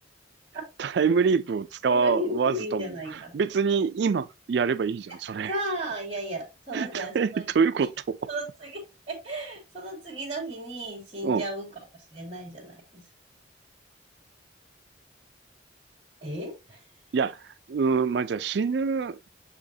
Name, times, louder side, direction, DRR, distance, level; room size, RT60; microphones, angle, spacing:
voice 1, 0.8-5.5 6.7-8.2 11.2-11.4 17.1-19.3, right 5 dB, 65° right, 0.4 m, -26 dB
voice 2, 1.9-3.3 5.5-7.5 8.3-8.8 9.1-11.7 12.1-13.0 16.2-16.8, equal, 30° right, 2.4 m, -34 dB
6.9 x 5.0 x 2.7 m
head